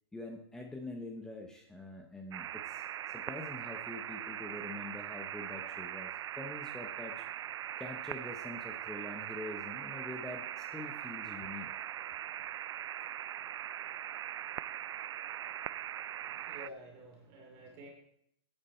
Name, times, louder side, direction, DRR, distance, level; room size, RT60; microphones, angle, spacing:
voice 1, 0.1-7.3 7.8-11.7, left 2 dB, 5° left, 2 dB, 0.8 m, -45 dB
sound 1, 2.3-16.7, right 11 dB, 85° right, 0.4 m, -41 dB
voice 2, 16.3-17.9, right 1 dB, 30° right, 0 dB, 2.7 m, -50 dB
15.5 x 8.9 x 4.3 m, 0.75 s
hypercardioid pair, 155°, 14 cm